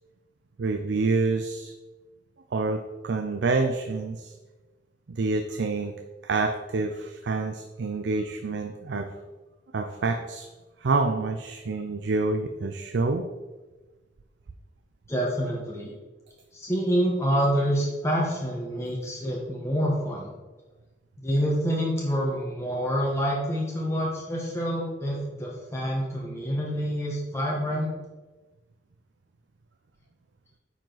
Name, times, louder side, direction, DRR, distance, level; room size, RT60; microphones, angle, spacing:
voice 1, 0.6-1.7 2.5-4.3 5.1-5.9 6.2-9.1 9.7-10.5 10.8-13.2, right 3 dB, 70° right, 7 dB, 0.5 m, -27 dB
voice 2, 15.1-15.9 16.5-20.3 21.2-27.9, equal, 15° left, -4 dB, 1.2 m, -27 dB
8.9 x 5.0 x 3.9 m, 1.2 s
head